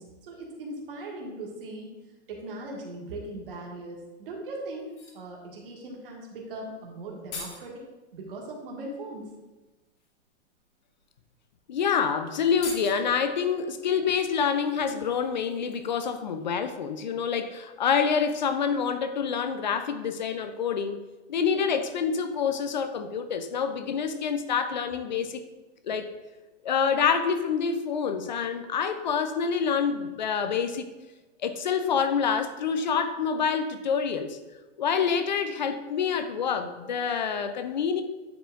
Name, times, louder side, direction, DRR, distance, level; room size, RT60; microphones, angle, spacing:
voice 1, 0.0-1.9 2.3-7.8 8.1-9.3, right 2 dB, 50° right, -2 dB, 1.8 m, -39 dB
sound 1, 4.8-5.3 6.8-6.9 7.0-7.7 9.1-9.2 9.9-10.1 11.0-11.1 11.4-11.6 11.8-11.9 12.5-13.2 14.3-16.3 16.6-16.8, left 4 dB, 70° left, 1.9 m, -43 dB
voice 2, 11.7-21.0 21.3-25.4 25.9-26.1 26.6-30.9 31.4-34.4 34.8-38.0, left 6 dB, 40° left, 9 dB, 0.4 m, -27 dB
10.0 x 4.8 x 2.5 m, 1.1 s
hypercardioid pair, 175°, 36 cm